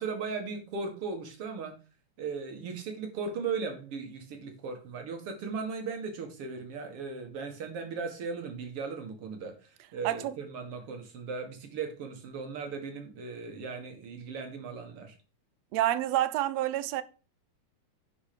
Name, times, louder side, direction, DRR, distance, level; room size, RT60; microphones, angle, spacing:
voice 1, 0.0-1.8 2.2-15.2, right 5 dB, 50° right, 2.5 m, -37 dB
voice 2, 10.0-10.3 15.7-17.0, right 13 dB, 80° right, 1.5 m, -28 dB
10.5 x 4.8 x 5.1 m
omnidirectional pair, 3.6 m